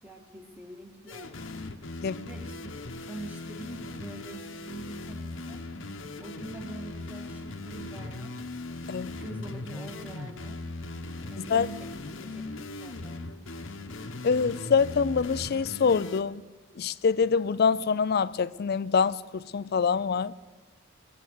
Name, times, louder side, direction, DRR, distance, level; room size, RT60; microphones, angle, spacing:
voice 1, 0.0-1.4 2.1-2.8 3.1-5.7 6.2-8.4 9.1-10.6 11.3-13.2, right 2 dB, 10° right, 1.6 m, -44 dB
sound 1, 1.1-16.2, left 2 dB, 70° left, 1.0 m, -39 dB
voice 2, 14.2-16.4 16.8-20.3, left 5 dB, 50° left, 0.4 m, -25 dB
22.5 x 8.0 x 6.4 m
head